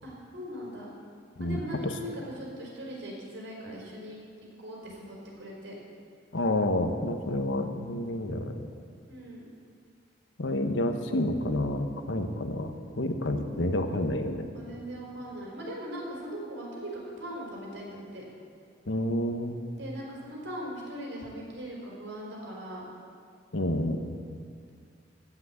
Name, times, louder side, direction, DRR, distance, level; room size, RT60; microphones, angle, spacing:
voice 1, 0.0-0.9 1.4-4.2 4.6-5.7 9.1-9.5 14.5-18.2 19.8-22.8, equal, 85° right, -3 dB, 4.4 m, -40 dB
voice 2, 1.4-1.9 6.3-8.7 10.4-12.7 13.0-14.4 18.9-19.6 23.5-24.0, left 1 dB, 90° left, 6 dB, 1.1 m, -29 dB
16.0 x 6.1 x 8.7 m, 2.2 s
head